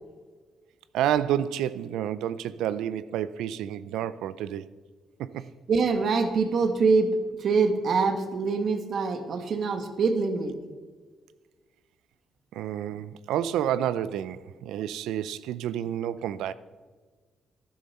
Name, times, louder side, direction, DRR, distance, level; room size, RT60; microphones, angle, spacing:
voice 1, 0.9-4.7 5.2-5.4 12.5-16.5, right 10 dB, 85° right, 0.4 m, -29 dB
voice 2, 5.7-7.1 7.4-10.5, right 4 dB, 65° right, 1.5 m, -24 dB
12.0 x 10.5 x 4.3 m
supercardioid pair, 70°, 0 cm